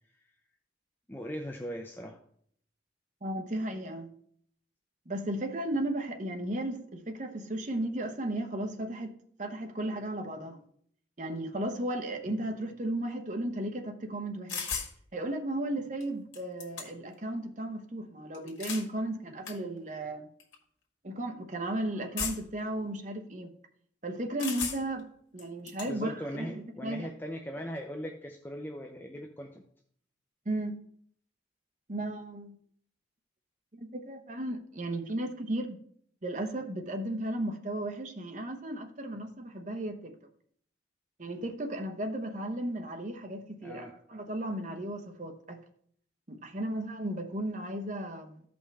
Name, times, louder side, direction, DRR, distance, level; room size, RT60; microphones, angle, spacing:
voice 1, 1.1-2.2 25.9-29.7 43.6-43.9, equal, 10° left, 0.5 m, -39 dB
voice 2, 3.2-4.1 5.1-9.1 9.4-10.6 11.2-14.7 15.1-20.3 21.0-23.5 24.0-25.1 25.3-27.1 30.4-30.7 31.9-32.6 33.7-35.8 36.2-40.1 41.2-45.6 46.3-48.4, right 1 dB, 40° right, 0.9 m, -35 dB
sound 1, 14.5-14.9 16.0-16.1 16.3-17.1 18.3-18.9 19.5-19.6 20.4-20.6 22.2-22.6 24.4-25.0 25.4-25.9, left 6 dB, 85° left, 1.8 m, -36 dB
14.0 x 5.3 x 3.4 m
head